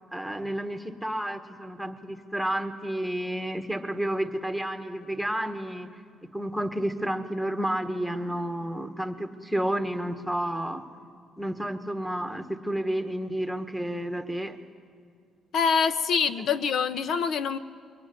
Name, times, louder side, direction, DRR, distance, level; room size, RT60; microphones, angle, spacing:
voice 1, 0.1-5.9 6.3-10.8 11.4-14.6, right 1 dB, ahead, 6 dB, 1.5 m, -31 dB
voice 2, 15.5-17.6, left 6 dB, 60° left, 12 dB, 1.0 m, -25 dB
23.5 x 22.5 x 9.7 m, 2.2 s
cardioid pair, 130°, 0 cm